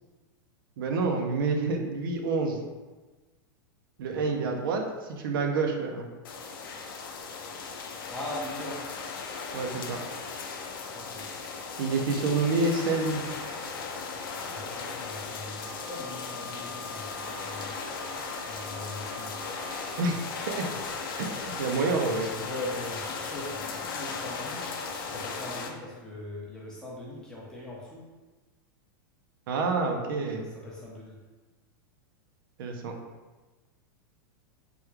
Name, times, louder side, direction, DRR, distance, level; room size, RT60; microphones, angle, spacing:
voice 1, 0.8-2.6 4.0-6.1 9.5-10.0 11.8-13.2 20.0-20.2 20.5-20.7 21.2-22.3 29.5-30.5 32.6-33.0, right 3 dB, 75° right, 3 dB, 0.5 m, -28 dB
voice 2, 4.0-4.5 8.1-8.9 10.9-11.3 14.5-17.9 18.5-19.4 22.3-24.7 25.0-28.1 30.3-31.2, left 1 dB, 5° left, -5 dB, 0.5 m, -41 dB
sound 1, 6.2-25.7, left 5 dB, 75° left, 0.5 m, -37 dB
Wind instrument woodwind instrument, 15.5-20.2, right 3 dB, 55° right, 0.9 m, -46 dB
3.4 x 2.2 x 3.1 m, 1.2 s
supercardioid pair, 160°, 12 cm